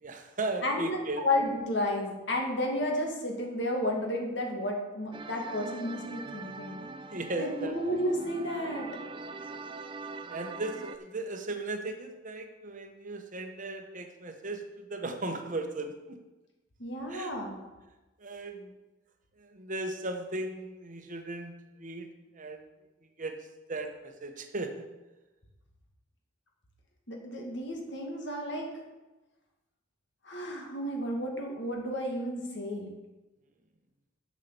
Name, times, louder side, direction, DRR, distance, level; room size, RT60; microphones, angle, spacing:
voice 1, 0.0-1.2 7.1-7.7 10.3-16.2 17.1-17.3 18.2-18.7 19.4-21.5 21.8-22.7 23.2-23.3 23.7-24.9, right 2 dB, 40° right, 5 dB, 1.1 m, -37 dB
voice 2, 0.6-1.0 1.2-6.8 7.4-8.9 16.8-17.6 27.1-28.7 30.2-32.9, left 1 dB, 60° left, 1 dB, 2.1 m, -32 dB
sound 1, 5.1-11.0, right 3 dB, 25° right, 0.4 m, -43 dB
7.4 x 7.4 x 6.9 m, 1.1 s
head